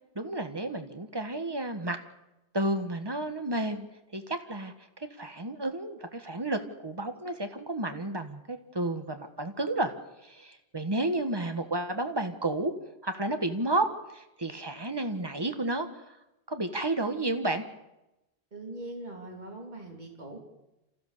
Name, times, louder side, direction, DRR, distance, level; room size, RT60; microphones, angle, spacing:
voice 1, 0.1-2.0 2.5-3.9 4.1-4.7 5.2-9.9 10.2-12.7 13.0-13.9 14.1-16.1 16.5-17.6, right 2 dB, 20° right, 7 dB, 1.6 m, -31 dB
voice 2, 18.5-20.4, right 2 dB, 40° right, 1 dB, 3.5 m, -41 dB
27.5 x 15.0 x 6.8 m, 0.94 s
omnidirectional pair, 1.1 m